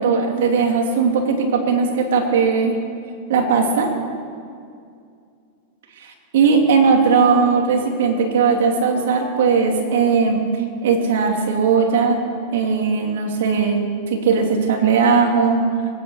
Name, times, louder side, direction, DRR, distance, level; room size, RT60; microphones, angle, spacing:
voice 1, 0.0-2.8 3.3-3.9 6.0-10.4 10.8-12.2 12.5-13.8 14.1-15.6, right 5 dB, 75° right, 2 dB, 2.9 m, -18 dB
22.0 x 9.8 x 6.4 m, 2.3 s
supercardioid pair, 135°, 0 cm